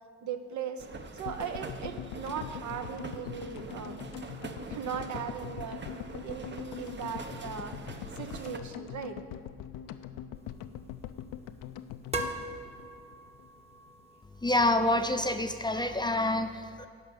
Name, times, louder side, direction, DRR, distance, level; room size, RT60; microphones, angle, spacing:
voice 1, 0.2-0.9 1.1-4.0 4.7-7.7 8.2-9.2, right 7 dB, 65° right, 7 dB, 1.0 m, -38 dB
sound 1, 0.8-8.6, right 4 dB, 35° right, 0.9 m, -44 dB
sound 2, 1.2-13.5 13.7-13.8 14.0-14.1, left 10 dB, 80° left, 0.6 m, -43 dB
sound 3, 10.3-16.2, right 2 dB, 20° right, 1.2 m, -43 dB
voice 2, 14.4-16.9, left 1 dB, 15° left, 7 dB, 0.6 m, -27 dB
12.0 x 5.1 x 7.2 m, 2.3 s
cardioid pair, 75°, 32 cm